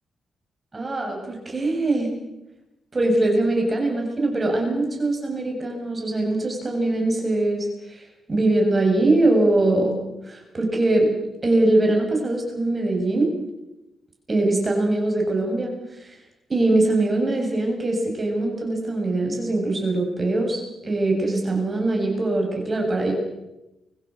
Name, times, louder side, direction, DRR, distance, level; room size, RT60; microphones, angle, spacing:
voice 1, 0.7-2.1 2.9-8.0 8.3-10.0 10.3-11.1 11.4-13.3 14.3-15.7 16.0-16.1 16.5-23.1, right 2 dB, 35° right, 1 dB, 7.5 m, -22 dB
24.0 x 23.0 x 6.5 m, 0.94 s
cardioid pair, 70°, 0 cm